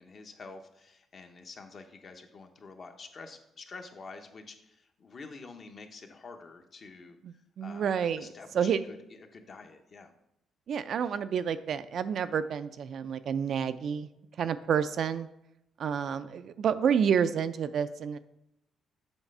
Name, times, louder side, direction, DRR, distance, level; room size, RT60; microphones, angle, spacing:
voice 1, 0.0-7.9 8.2-10.1, left 4 dB, 45° left, 5 dB, 0.8 m, -48 dB
voice 2, 7.2-8.3 8.5-8.8 10.7-14.1 14.4-15.3 15.8-18.2, right 7 dB, 60° right, 12 dB, 0.4 m, -29 dB
7.2 x 3.2 x 5.4 m, 0.83 s
cardioid pair, 90°, 0 cm